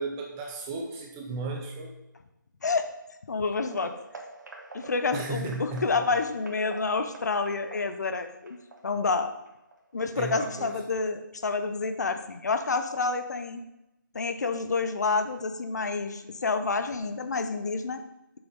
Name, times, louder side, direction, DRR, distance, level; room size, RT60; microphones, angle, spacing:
voice 1, 0.0-1.9 5.1-6.0 10.2-10.8, right 3 dB, 10° right, 1 dB, 0.5 m, -35 dB
voice 2, 3.3-3.9 4.7-8.6 8.8-9.3 9.9-13.6 14.1-18.0, left 4 dB, 55° left, 8 dB, 0.9 m, -28 dB
sound 1, 3.5-10.2 10.5-10.7 11.1-11.2 11.7-11.8, right 2 dB, 60° right, 1.7 m, -47 dB
7.0 x 6.0 x 5.4 m, 0.90 s
figure-of-eight pair, 165°, 11 cm